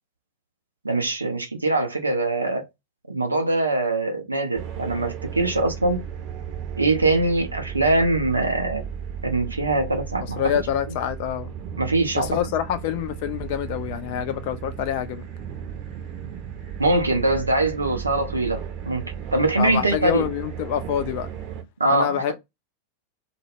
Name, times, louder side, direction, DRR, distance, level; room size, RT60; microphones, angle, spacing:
voice 1, 0.8-2.7 3.1-6.0 6.8-8.8 9.2-10.4 11.8-12.4 16.8-19.0 19.3-20.3 21.8-22.3, right 2 dB, 80° right, 0.5 m, -23 dB
sound 1, 4.5-21.6, right 8 dB, 40° right, 0.6 m, -35 dB
voice 2, 10.2-11.5 12.1-15.3 19.6-21.3 21.9-22.3, left 10 dB, 45° left, 0.4 m, -26 dB
2.1 x 2.0 x 3.1 m
figure-of-eight pair, 90°, 0 cm